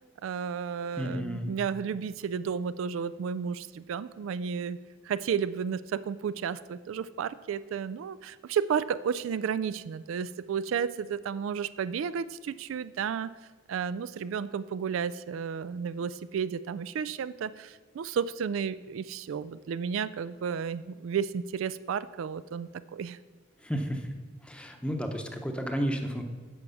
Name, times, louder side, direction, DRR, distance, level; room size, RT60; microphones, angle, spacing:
voice 1, 0.2-4.8 5.0-13.3 13.7-23.2, right 7 dB, 75° right, 16 dB, 0.3 m, -32 dB
voice 2, 1.0-1.5 23.6-24.1 24.4-26.2, equal, 5° left, 4 dB, 0.8 m, -32 dB
10.5 x 4.7 x 6.9 m, 1.4 s
head